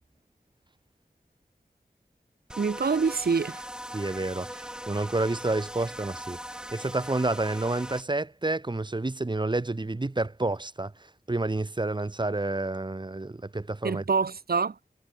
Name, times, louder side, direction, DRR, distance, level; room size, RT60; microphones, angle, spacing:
sound 1, 2.5-8.0, equal, 5° right, 5.8 m, -40 dB
voice 1, 2.6-3.6 13.8-14.8, right 5 dB, 75° right, 0.9 m, -26 dB
voice 2, 3.9-6.4 6.7-10.9 11.3-14.0, right 2 dB, 30° right, 0.8 m, -29 dB
wide cardioid pair, 55°, 16 cm